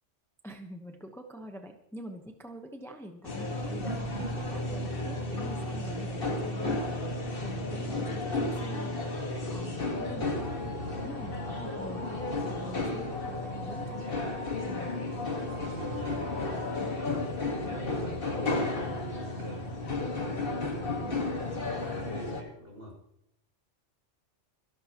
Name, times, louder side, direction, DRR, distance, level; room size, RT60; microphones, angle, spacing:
voice 1, 0.4-12.2 12.5-14.1 14.7-15.0 16.8-17.0 17.6-17.8 21.1-21.3, equal, ahead, 4 dB, 0.9 m, -46 dB
sound 1, 3.2-22.4, left 2 dB, 50° left, 1.9 m, -33 dB
sound 2, 3.6-8.4, right 4 dB, 35° right, 0.8 m, -46 dB
sound 3, 9.9-16.7, right 1 dB, 85° right, 5.2 m, -49 dB
voice 2, 15.8-16.3 16.7-19.7 20.2-21.2 21.6-23.0, right 1 dB, 55° right, -1 dB, 6.5 m, -46 dB
26.0 x 11.5 x 3.0 m, 0.80 s
omnidirectional pair, 1.3 m